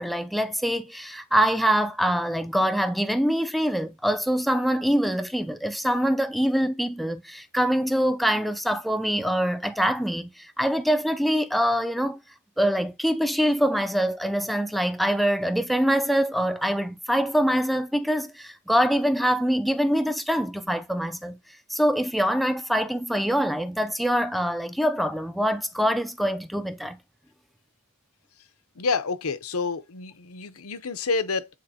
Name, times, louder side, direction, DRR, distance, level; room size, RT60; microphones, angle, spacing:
voice 1, 0.0-12.2 12.6-21.4 21.7-27.0, equal, ahead, 0.5 m, -24 dB
voice 2, 28.8-31.5, left 4 dB, 85° left, 0.8 m, -28 dB
8.4 x 3.9 x 2.8 m
head